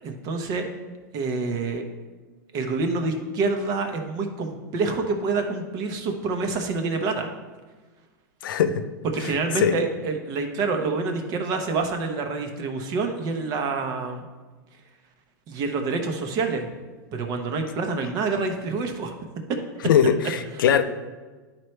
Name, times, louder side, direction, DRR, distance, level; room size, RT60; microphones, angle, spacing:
voice 1, 0.0-0.7 1.1-1.8 2.5-7.3 9.1-14.3 15.5-16.7 17.1-19.1, right 3 dB, 35° right, 5 dB, 0.9 m, -27 dB
voice 2, 8.4-8.9 9.2-9.3 9.6-9.8 19.8-20.8, left 8 dB, 85° left, 10 dB, 0.6 m, -21 dB
11.0 x 4.5 x 3.2 m, 1.3 s
supercardioid pair, 145°, 11 cm